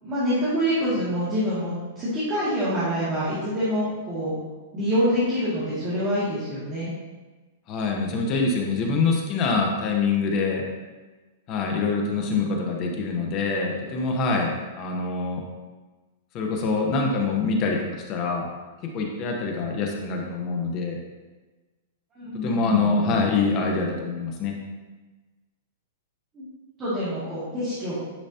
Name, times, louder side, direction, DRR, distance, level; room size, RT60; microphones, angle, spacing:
voice 1, 0.0-4.3 4.7-6.9 22.1-23.1 26.3-26.4 26.8-27.9, equal, 20° right, -11 dB, 2.2 m, -26 dB
voice 2, 7.7-10.6 11.5-15.4 16.3-18.5 18.9-21.0 22.4-24.5, left 4 dB, 30° left, 1 dB, 1.0 m, -25 dB
10.0 x 4.8 x 2.9 m, 1.3 s
supercardioid pair, 160°, 0 cm